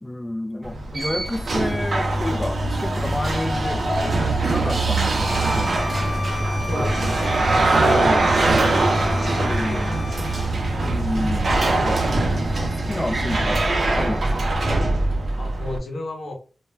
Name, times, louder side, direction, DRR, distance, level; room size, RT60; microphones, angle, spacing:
voice 1, 0.0-5.9 7.6-8.9 9.4-10.0 10.8-12.1 12.5-13.7 14.0-14.5, left 1 dB, 15° left, 0.3 m, -30 dB
sound 1, 0.6-15.8, right 2 dB, 60° right, 0.6 m, -22 dB
sound 2, 3.3-14.6, equal, 30° right, 0.9 m, -38 dB
Bowed string instrument, 5.1-10.5, left 2 dB, 5° right, 1.0 m, -35 dB
voice 2, 6.7-8.8 9.1-10.3 15.4-16.3, left 1 dB, 75° left, 0.7 m, -34 dB
2.2 x 2.1 x 3.1 m
wide cardioid pair, 85°, 0 cm